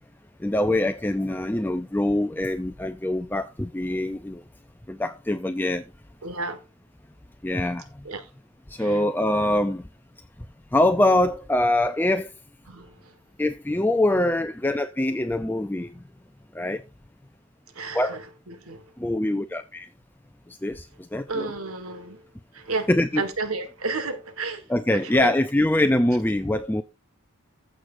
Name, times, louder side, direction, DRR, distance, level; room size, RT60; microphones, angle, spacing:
voice 1, 0.4-4.4 4.9-5.9 7.4-8.1 8.7-9.9 10.7-12.3 13.4-16.0 16.5-16.8 17.9-18.2 19.0-19.9 20.6-21.5 22.9-23.2 24.7-26.8, left 1 dB, 10° left, 0.4 m, -24 dB
voice 2, 6.2-6.6 8.1-8.3 8.8-9.0 12.7-13.1 17.8-18.8 21.3-22.2 22.5-22.9 23.1-24.6 24.9-25.3, right 3 dB, 80° right, 1.7 m, -32 dB
15.0 x 6.3 x 2.6 m
head